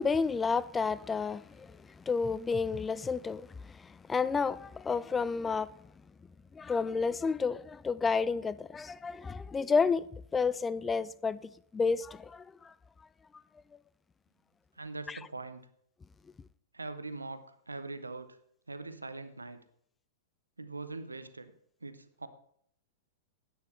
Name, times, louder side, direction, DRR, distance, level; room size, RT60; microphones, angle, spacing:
voice 1, 0.0-5.7 6.5-10.1 10.3-12.7 15.1-15.2, left 5 dB, 15° left, 0.4 m, -31 dB
voice 2, 14.8-15.7 16.7-18.4 18.7-19.6 20.6-21.5 21.8-22.3, right 3 dB, 85° right, 0.8 m, -42 dB
10.5 x 9.0 x 4.4 m
figure-of-eight pair, 100°, 0 cm